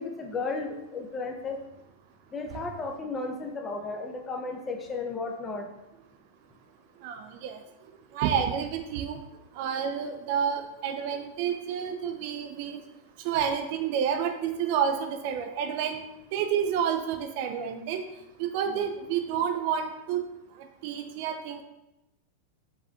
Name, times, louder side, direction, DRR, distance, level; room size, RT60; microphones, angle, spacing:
voice 1, 0.0-1.6 2.3-5.7 18.7-18.8, left 3 dB, 20° left, 3 dB, 0.5 m, -34 dB
voice 2, 7.0-7.6 8.1-9.2 9.6-12.8 13.2-16.0 16.3-18.0 18.4-20.2 20.8-21.6, right 8 dB, 45° right, 6 dB, 0.4 m, -29 dB
4.8 x 3.3 x 2.4 m, 0.91 s
figure-of-eight pair, 90°, 0 cm